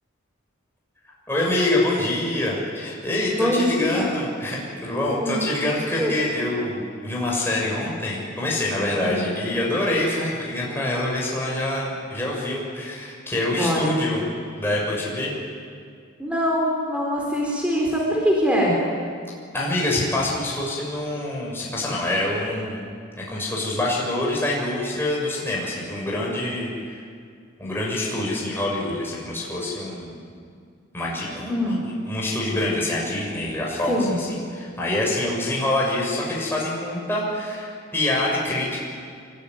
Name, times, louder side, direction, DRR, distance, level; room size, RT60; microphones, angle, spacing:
voice 1, 1.3-14.2 14.6-15.3 19.5-22.9 23.2-26.7 27.6-30.2 30.9-34.3 34.5-38.8, left 1 dB, 10° left, -4 dB, 6.8 m, -25 dB
voice 2, 3.4-4.1 5.1-5.4 6.0-6.1 9.1-9.3 13.5-14.0 16.2-18.8 31.5-31.8 33.9-34.2, equal, 5° right, -2 dB, 4.3 m, -23 dB
25.5 x 23.0 x 9.8 m, 2.2 s
head